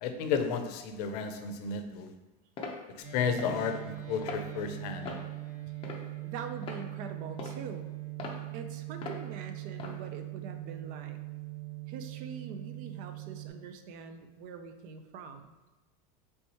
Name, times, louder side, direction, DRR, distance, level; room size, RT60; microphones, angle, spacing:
voice 1, 0.0-2.1 3.1-5.1, left 6 dB, 75° left, 7 dB, 0.6 m, -32 dB
sound 1, 2.6-2.8 3.4-3.6 4.2-4.4 5.1-5.3 5.8-6.2 6.6-6.8 7.4-7.6 8.2-8.4 9.0-9.2 9.8-10.0, left 4 dB, 25° left, 0.6 m, -40 dB
sound 2, 3.0-13.5, right 17 dB, 20° right, 1.5 m, -41 dB
voice 2, 6.2-7.9 8.5-11.2 11.9-15.5, right 5 dB, 45° right, 7 dB, 0.4 m, -44 dB
3.3 x 3.0 x 4.1 m, 1.1 s
supercardioid pair, 150°, 20 cm